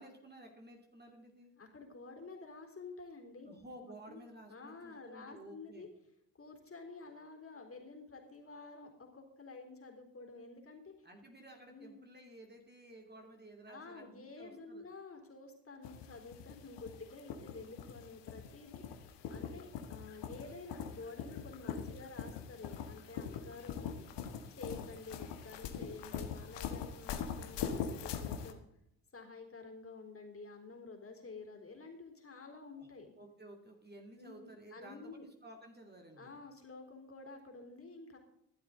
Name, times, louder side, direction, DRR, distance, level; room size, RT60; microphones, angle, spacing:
voice 1, 0.0-1.5 3.4-5.9 11.0-14.8 32.8-32.9 33.2-36.4, right 1 dB, 20° right, 2 dB, 2.9 m, -54 dB
voice 2, 1.6-3.5 3.8-4.2 4.5-5.9 6.4-10.9 11.7-12.1 13.7-18.8 19.1-24.0 24.5-28.6 29.1-33.1 34.1-35.2 36.2-38.2, left 3 dB, 25° left, 3 dB, 4.1 m, -50 dB
sound 1, 15.8-28.5, left 7 dB, 60° left, 1.8 m, -42 dB
15.0 x 12.0 x 3.9 m, 0.78 s
hypercardioid pair, 55°, 48 cm